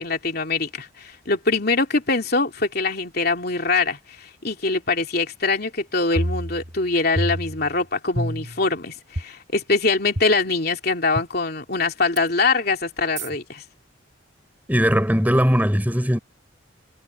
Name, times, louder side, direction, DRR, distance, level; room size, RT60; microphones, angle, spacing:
voice 1, 0.0-13.6, left 3 dB, 50° left, 3.1 m, -23 dB
sound 1, 6.2-6.9 7.2-7.8 8.2-8.7 9.2-9.3 10.2-10.3 11.2-11.3 12.2-12.3 13.2-13.3, equal, 35° right, 6.3 m, -27 dB
voice 2, 14.7-16.2, equal, 10° right, 3.5 m, -19 dB
head